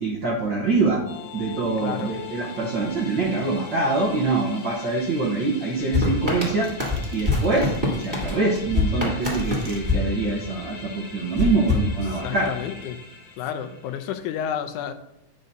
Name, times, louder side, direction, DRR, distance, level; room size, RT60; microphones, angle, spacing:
voice 1, 0.0-1.0 1.3-6.7 7.1-12.5, right 3 dB, 75° right, -3 dB, 1.0 m, -24 dB
sound 1, 1.1-14.1, left 5 dB, 60° left, 1.2 m, -42 dB
voice 2, 1.8-2.2 12.1-13.0 13.3-14.9, left 9 dB, 90° left, 8 dB, 2.1 m, -31 dB
sound 2, 5.9-10.8 11.4-12.6, left 2 dB, 10° right, 2.6 m, -26 dB
sound 3, 6.4-8.2 8.8-9.8, right 4 dB, 55° right, 1.6 m, -45 dB
10.5 x 6.5 x 2.7 m, 0.82 s
omnidirectional pair, 3.5 m